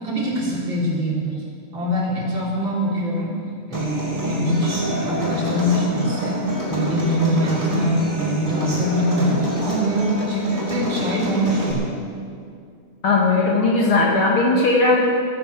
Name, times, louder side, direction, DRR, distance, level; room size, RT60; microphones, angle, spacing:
voice 1, 0.0-1.4 1.7-3.3 3.7-11.9, equal, 40° right, -5 dB, 4.0 m, -23 dB
Human voice / Acoustic guitar, 3.7-11.7, equal, 15° right, 5.2 m, -26 dB
voice 2, 13.0-15.1, left 3 dB, 50° left, -3 dB, 2.4 m, -17 dB
14.5 x 11.5 x 8.1 m, 2.3 s
omnidirectional pair, 3.3 m